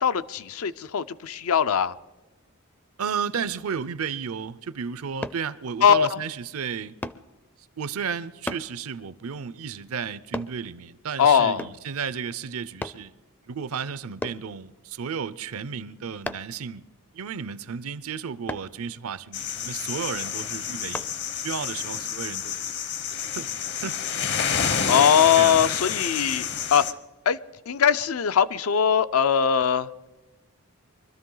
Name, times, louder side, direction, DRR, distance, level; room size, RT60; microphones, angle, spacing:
voice 1, 0.0-1.9 5.8-6.2 11.2-11.7 24.9-26.9 27.3-27.4 27.7-29.9, left 7 dB, 75° left, 0.5 m, -21 dB
voice 2, 3.0-6.9 7.8-13.1 13.5-16.8 17.1-21.1 21.4-22.6 23.4-24.1 25.4-25.6, right 6 dB, 75° right, 0.6 m, -33 dB
sound 1, 5.2-5.4 7.0-7.3 8.5-8.7 10.3-10.6 11.6-11.9 12.8-13.0 14.2-14.5 16.2-16.6 18.5-18.7 20.9-21.1 21.7-21.8, left 1 dB, 10° left, 0.4 m, -34 dB
sound 2, 19.3-26.9, left 7 dB, 55° left, 0.9 m, -29 dB
24.0 x 13.0 x 3.9 m
head